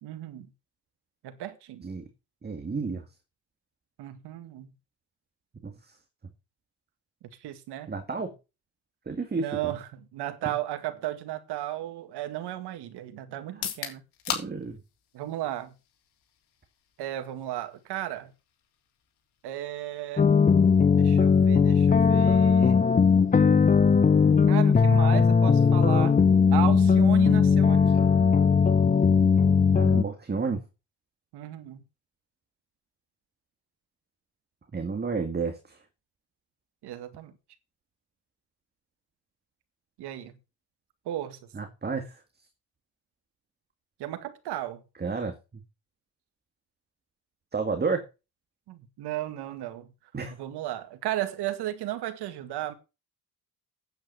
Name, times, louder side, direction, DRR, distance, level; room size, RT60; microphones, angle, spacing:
voice 1, 0.0-0.5 1.2-1.9 4.0-4.7 7.4-7.9 9.4-14.0 15.1-15.7 17.0-18.3 19.4-20.3 21.0-22.8 24.5-26.2 26.5-28.1 31.3-31.8 36.8-37.3 40.0-40.3 41.1-41.4 44.0-44.8 48.7-49.9 50.4-52.7, right 13 dB, 90° right, 2.0 m, -34 dB
voice 2, 2.4-3.0 5.6-5.7 7.9-8.3 9.1-9.7 10.4-10.5 13.6-13.7 14.3-14.8 29.7-30.6 34.7-35.8 41.5-42.2 45.0-45.3 47.5-48.1 50.1-50.3, right 4 dB, 25° right, 2.0 m, -31 dB
sound 1, 13.5-27.3, left 9 dB, 85° left, 3.6 m, -44 dB
sound 2, 20.2-30.0, left 5 dB, 20° left, 0.6 m, -19 dB
9.2 x 8.5 x 6.8 m
cardioid pair, 105°, 39 cm